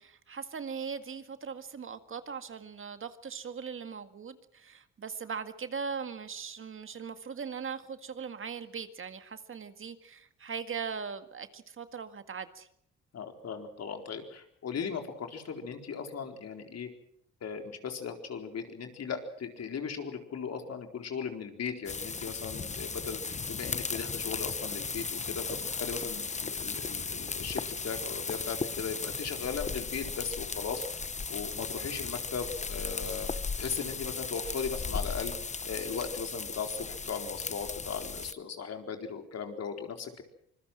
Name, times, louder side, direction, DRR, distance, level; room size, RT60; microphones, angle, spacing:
voice 1, 0.0-12.7, right 6 dB, 45° right, 1.9 m, -40 dB
voice 2, 13.1-16.9 17.4-30.8 31.3-33.3 33.6-35.3 35.6-40.2, left 6 dB, 55° left, 4.3 m, -37 dB
sound 1, 21.9-38.3, left 4 dB, 25° left, 0.9 m, -36 dB
25.5 x 21.0 x 6.3 m
cardioid pair, 90°, 30 cm